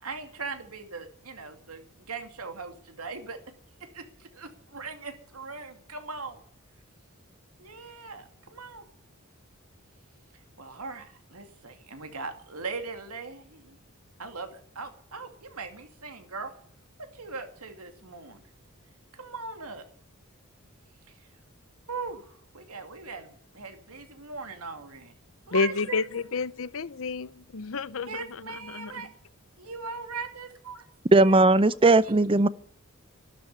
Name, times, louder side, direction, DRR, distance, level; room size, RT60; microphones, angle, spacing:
voice 1, 0.0-3.4 3.8-6.4 7.6-8.8 10.6-13.8 14.2-16.5 17.0-18.4 19.1-19.8 21.1-21.3 21.9-25.1 25.5-26.0 28.1-29.1 29.6-30.9 31.1-31.3 32.0-32.1, right 4 dB, 90° right, 2.5 m, -40 dB
voice 2, 25.5-28.9, left 4 dB, 65° left, 0.7 m, -30 dB
voice 3, 31.1-32.5, right 2 dB, 25° right, 0.6 m, -18 dB
12.5 x 12.0 x 9.6 m
head